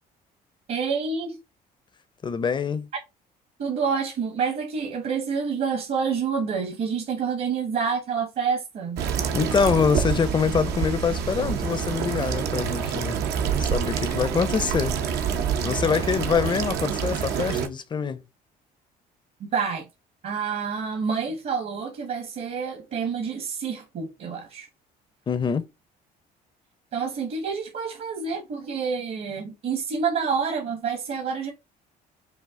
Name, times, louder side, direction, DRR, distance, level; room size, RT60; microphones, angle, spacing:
voice 1, 0.7-1.4 3.6-9.0 19.4-19.8 20.2-24.7 26.9-31.5, right 6 dB, 60° right, 1.3 m, -28 dB
voice 2, 2.2-2.9 9.3-13.2 13.6-15.3 15.6-18.2 25.3-25.6, left 6 dB, 25° left, 0.6 m, -25 dB
sound 1, 9.0-17.7, right 7 dB, 80° right, 0.8 m, -27 dB
5.6 x 2.3 x 3.6 m
cardioid pair, 110°, 17 cm